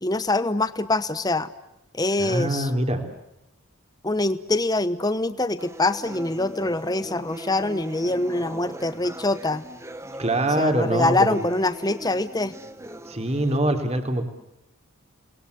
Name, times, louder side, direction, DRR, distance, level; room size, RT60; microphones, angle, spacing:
voice 1, 0.0-1.5 1.9-2.7 4.0-9.6 10.6-12.5, left 2 dB, 15° left, 13 dB, 1.0 m, -24 dB
voice 2, 2.2-3.0 10.2-11.4 13.1-14.2, right 1 dB, 30° right, 5 dB, 3.5 m, -24 dB
sound 1, 5.6-13.6, right 1 dB, 10° right, 1.3 m, -40 dB
30.0 x 21.5 x 8.3 m, 0.87 s
head